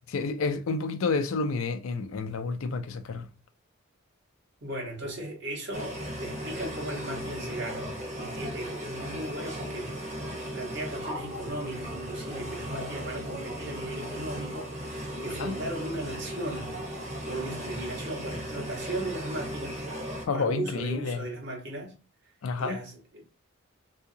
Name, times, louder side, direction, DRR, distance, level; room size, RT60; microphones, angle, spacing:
voice 1, 0.1-3.3 15.4-15.5 20.3-21.3 22.4-22.8, left 4 dB, 75° left, 0.4 m, -30 dB
voice 2, 4.6-10.0 10.5-16.8 17.2-19.8 20.3-22.0 22.6-23.2, right 1 dB, 55° right, 1.2 m, -37 dB
sound 1, 5.7-20.3, equal, 35° right, 1.0 m, -36 dB
3.6 x 2.8 x 2.6 m
head